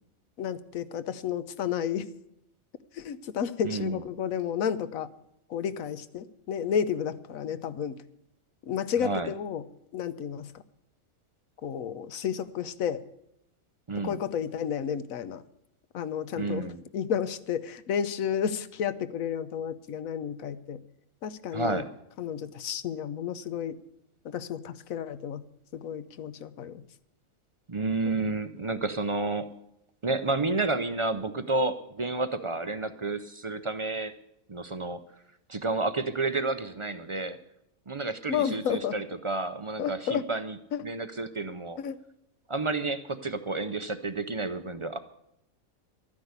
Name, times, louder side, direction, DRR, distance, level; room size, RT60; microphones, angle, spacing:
voice 1, 0.4-2.1 2.9-5.1 5.5-8.0 8.7-9.6 9.9-10.6 11.6-13.0 14.0-15.4 15.9-16.7 16.9-20.8 21.2-21.8 22.2-23.8 24.2-25.5 25.7-26.8 38.3-39.0 39.8-40.2 40.7-40.9 41.8-42.0, left 8 dB, 75° left, 13 dB, 1.2 m, -31 dB
voice 2, 3.6-4.0 9.0-9.3 13.9-14.2 16.4-16.8 21.5-21.9 27.7-29.5 30.0-34.1 34.5-35.0 35.5-37.4 37.9-40.6 40.8-41.8 42.5-45.0, right 3 dB, 45° right, 11 dB, 0.4 m, -30 dB
13.0 x 9.9 x 8.2 m, 0.79 s
omnidirectional pair, 1.4 m